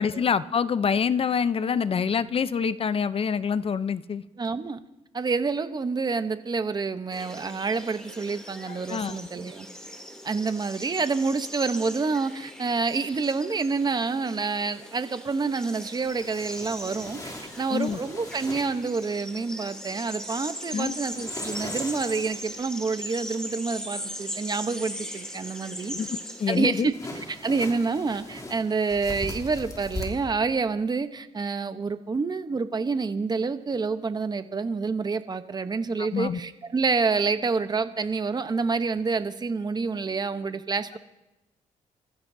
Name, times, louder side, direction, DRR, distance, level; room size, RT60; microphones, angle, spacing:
voice 1, 0.0-4.2 8.7-9.2 17.7-18.0 20.7-21.0 25.9-26.9 36.0-36.4, left 6 dB, 45° left, 15 dB, 0.6 m, -26 dB
voice 2, 4.4-4.8 5.1-9.7 10.2-25.9 26.5-26.9 27.3-41.0, right 4 dB, 30° right, 11 dB, 0.9 m, -28 dB
sound 1, 7.1-26.8, equal, 5° left, 2.8 m, -39 dB
sound 2, 16.1-19.2 21.1-22.6 26.9-30.0, left 2 dB, 30° left, 3.0 m, -40 dB
27.0 x 15.0 x 2.7 m, 0.95 s
cardioid pair, 85°, 14 cm